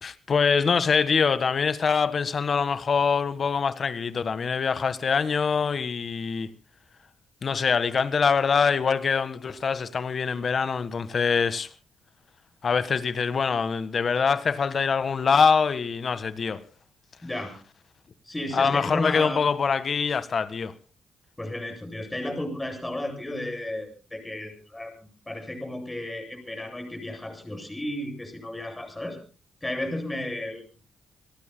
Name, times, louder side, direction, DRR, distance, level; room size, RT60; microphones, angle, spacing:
voice 1, 0.0-6.5 7.4-11.7 12.6-16.6 18.5-20.7, left 5 dB, 50° left, 1.6 m, -24 dB
voice 2, 17.2-17.6 18.3-19.4 21.4-24.9 25.3-29.2 29.6-30.6, left 1 dB, 15° left, 8.0 m, -33 dB
29.0 x 18.5 x 2.3 m
supercardioid pair, 55°, 0 cm